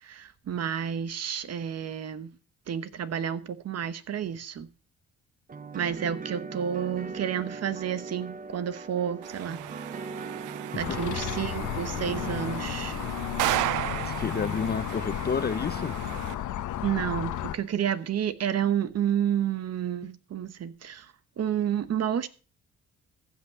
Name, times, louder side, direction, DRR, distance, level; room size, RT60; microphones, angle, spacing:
voice 1, 0.0-2.3 2.7-4.7 5.7-9.6 10.7-13.0 16.8-22.3, right 9 dB, 55° right, 1.1 m, -30 dB
sound 1, 5.5-13.4, right 4 dB, 30° right, 0.8 m, -40 dB
sound 2, 9.2-16.3, right 16 dB, 85° right, 0.5 m, -35 dB
sound 3, 10.8-17.6, left 12 dB, 75° left, 1.2 m, -33 dB
voice 2, 14.0-16.0, left 6 dB, 30° left, 0.8 m, -30 dB
15.0 x 5.8 x 6.9 m
cardioid pair, 90°, 30 cm